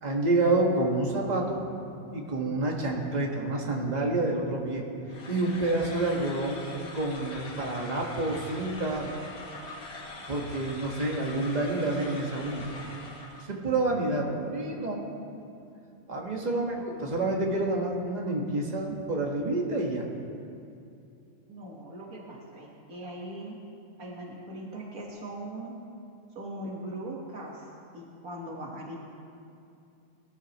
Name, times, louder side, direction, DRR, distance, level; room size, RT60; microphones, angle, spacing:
voice 1, 0.0-1.6 2.1-4.8 5.3-9.1 10.3-12.7 13.4-15.1 16.1-20.1, right 2 dB, 30° right, -1 dB, 1.6 m, -28 dB
sound 1, 5.1-13.5, left 2 dB, 75° left, 1.8 m, -43 dB
voice 2, 16.5-17.1 21.5-23.6 24.0-25.8 26.4-29.0, right 1 dB, 80° right, -2 dB, 1.9 m, -40 dB
20.5 x 13.0 x 3.0 m, 2.6 s
omnidirectional pair, 1.5 m